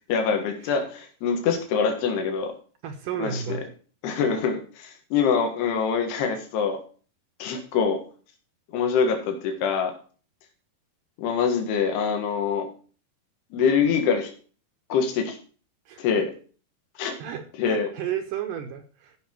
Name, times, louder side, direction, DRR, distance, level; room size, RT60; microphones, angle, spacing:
voice 1, 0.1-2.6 3.2-3.6 4.0-6.8 7.4-8.0 8.7-9.9 11.2-12.7 13.5-14.3 14.9-15.4 16.0-16.3 17.0-17.2 17.6-17.9, left 6 dB, 85° left, 4 dB, 3.7 m, -24 dB
voice 2, 2.8-3.6 15.9-16.2 17.2-19.2, right 9 dB, 70° right, 7 dB, 2.2 m, -33 dB
14.5 x 5.8 x 4.5 m, 0.40 s
omnidirectional pair, 4.6 m